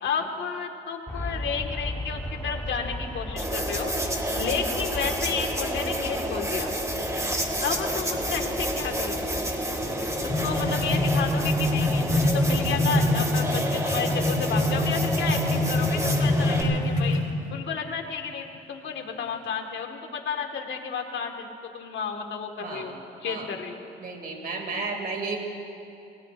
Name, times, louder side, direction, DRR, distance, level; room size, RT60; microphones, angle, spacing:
voice 1, 0.0-3.9 4.4-6.7 7.6-9.3 10.2-17.2 17.5-23.0 23.2-23.8, left 6 dB, 65° left, 4 dB, 1.7 m, -32 dB
Aircraft, 1.1-12.7, left 1 dB, 10° left, 2.3 m, -37 dB
sound 1, 3.4-16.6, right 1 dB, 15° right, 1.9 m, -30 dB
sound 2, 9.8-17.3, left 1 dB, 35° left, 2.9 m, -25 dB
voice 2, 22.6-22.9 23.2-23.5 24.0-25.4, right 3 dB, 50° right, 2 dB, 2.5 m, -33 dB
25.0 x 20.5 x 2.5 m, 2.8 s
cardioid pair, 90°, 20 cm